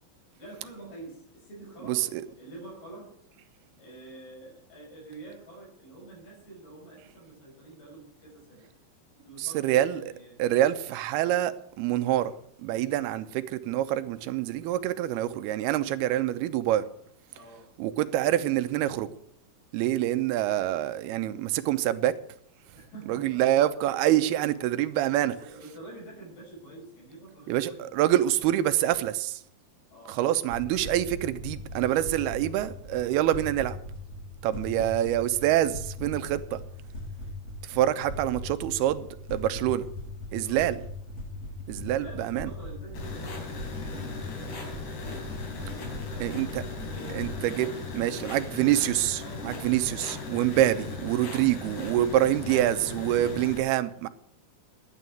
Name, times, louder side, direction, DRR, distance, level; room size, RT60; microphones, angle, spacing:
voice 1, 0.4-3.1 3.8-8.7 9.2-10.4 17.3-17.7 22.7-23.6 25.3-27.9 29.9-30.3 40.4-40.7 42.0-48.8 49.2-50.0, right 2 dB, 70° left, 7.7 m, -48 dB
voice 2, 1.9-2.2 9.5-10.0 10.4-12.3 12.6-16.8 17.8-19.1 19.7-22.1 23.1-25.3 27.5-29.4 30.2-33.8 34.4-36.6 37.6-39.9 40.3-40.8 41.7-42.5 46.2-46.6 47.1-47.3 47.6-47.7 47.9-54.1, right 13 dB, 80° right, 2.7 m, -26 dB
sound 1, 30.5-47.3, left 1 dB, 40° left, 8.3 m, -40 dB
sound 2, 42.9-53.6, left 3 dB, 90° left, 5.6 m, -38 dB
11.5 x 9.5 x 9.3 m
omnidirectional pair, 4.7 m